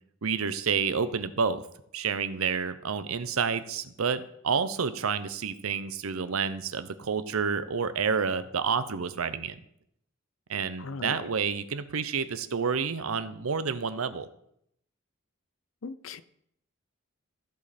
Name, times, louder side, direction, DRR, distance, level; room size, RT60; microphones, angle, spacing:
voice 1, 0.2-1.6 1.9-9.6 10.5-14.3, right 6 dB, 85° right, 12 dB, 0.7 m, -29 dB
voice 2, 10.8-11.2 15.8-16.2, left 4 dB, 70° left, 15 dB, 0.5 m, -38 dB
14.5 x 5.3 x 4.2 m, 0.74 s
head